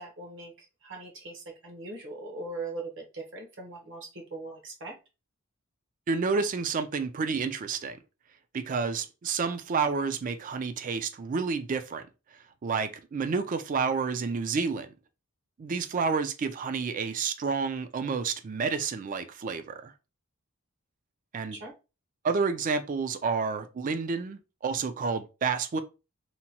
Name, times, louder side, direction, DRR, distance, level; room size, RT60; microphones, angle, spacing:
voice 1, 0.0-5.0 21.5-21.7, right 2 dB, 60° right, 0.8 m, -40 dB
voice 2, 6.1-8.0 8.5-12.0 12.6-14.9 15.6-19.9 21.3-21.6 22.2-25.8, right 5 dB, 35° right, 0.3 m, -29 dB
2.9 x 2.2 x 2.8 m
head